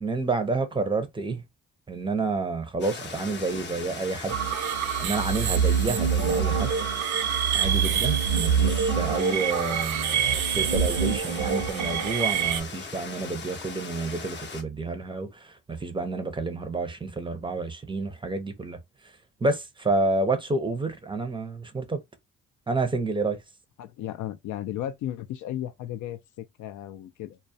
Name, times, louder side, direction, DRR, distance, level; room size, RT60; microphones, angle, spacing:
voice 1, 0.0-1.4 1.9-4.4 5.0-6.7 7.5-18.8 19.4-22.0 22.7-23.4, right 3 dB, 15° right, 0.5 m, -29 dB
sound 1, 2.8-14.6, left 4 dB, 35° left, 0.6 m, -39 dB
sound 2, 4.3-12.6, right 7 dB, 75° right, 0.5 m, -25 dB
voice 2, 23.8-27.4, left 12 dB, 80° left, 0.5 m, -35 dB
2.3 x 2.1 x 2.6 m
cardioid pair, 90°, 30 cm